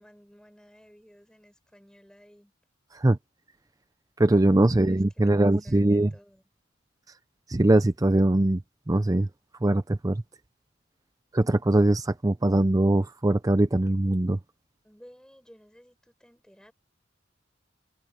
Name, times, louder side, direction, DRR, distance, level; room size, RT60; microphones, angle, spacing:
voice 1, 0.0-2.5 4.6-6.4 14.8-16.7, equal, 5° left, 5.6 m, -55 dB
voice 2, 4.2-6.1 7.5-8.6 8.9-9.3 9.6-10.2 11.3-14.4, right 1 dB, 20° right, 0.5 m, -22 dB
head